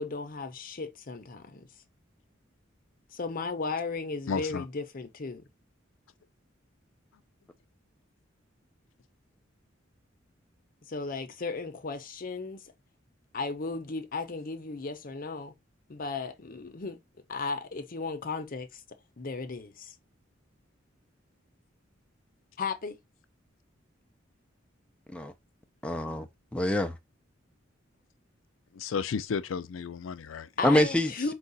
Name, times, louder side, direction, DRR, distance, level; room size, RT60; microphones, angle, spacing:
voice 1, 0.0-1.7 3.1-5.4 10.9-12.7 13.3-15.5 15.9-17.0 17.3-18.8 19.2-19.9 22.6-23.0 30.6-31.3, left 4 dB, 45° left, 0.7 m, -35 dB
voice 2, 4.3-4.7 28.7-30.5, left 6 dB, 85° left, 0.4 m, -33 dB
voice 3, 25.8-27.0 30.6-31.3, left 1 dB, 5° left, 0.5 m, -26 dB
4.7 x 2.4 x 4.0 m
head